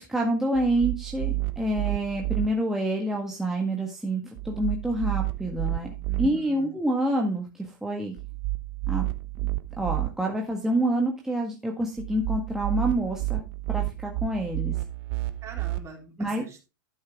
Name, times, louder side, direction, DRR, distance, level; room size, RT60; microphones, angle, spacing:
voice 1, 0.0-5.9 6.2-8.2 8.9-9.0 9.8-13.4 13.7-14.8 16.2-16.4, right 1 dB, 5° right, 0 dB, 1.7 m, -27 dB
sound 1, 0.5-2.5 4.4-6.3 8.2-10.1 12.0-15.8, right 20 dB, 50° right, 1.0 m, -30 dB
voice 2, 6.1-6.7 15.4-16.6, right 3 dB, 25° right, 3 dB, 3.5 m, -44 dB
12.0 x 6.4 x 3.6 m, 0.28 s
hypercardioid pair, 120°, 11 cm